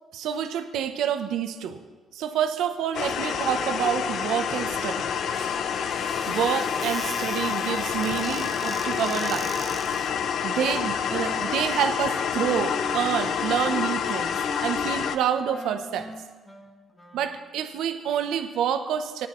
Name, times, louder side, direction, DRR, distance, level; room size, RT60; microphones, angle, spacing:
voice 1, 0.1-1.8 2.1-5.1 6.3-9.5 10.0-14.3 14.6-16.1 17.1-19.3, right 8 dB, 85° right, 8 dB, 0.8 m, -28 dB
sound 1, 2.9-15.2, left 7 dB, 70° left, 0.6 m, -28 dB
Squeak / Cupboard open or close, 5.3-10.2, right 3 dB, 30° right, 0.6 m, -41 dB
Wind instrument woodwind instrument, 10.6-17.6, left 1 dB, 15° left, 1.7 m, -42 dB
18.0 x 10.0 x 3.1 m, 1.4 s
cardioid pair, 90°, 0 cm